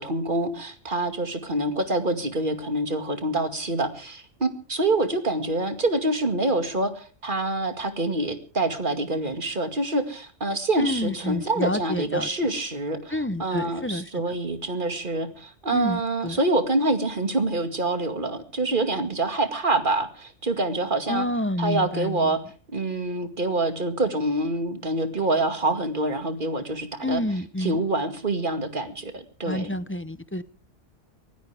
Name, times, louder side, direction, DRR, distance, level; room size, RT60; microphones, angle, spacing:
voice 1, 0.0-21.3 21.6-22.4 22.7-27.2 27.6-29.7, right 2 dB, 40° right, 9 dB, 2.3 m, -26 dB
voice 2, 10.8-12.3 13.1-14.1 15.7-16.4 21.1-22.4 27.0-27.8 29.4-30.4, left 1 dB, 10° left, 15 dB, 0.7 m, -29 dB
24.0 x 16.0 x 3.5 m, 0.39 s
omnidirectional pair, 1.3 m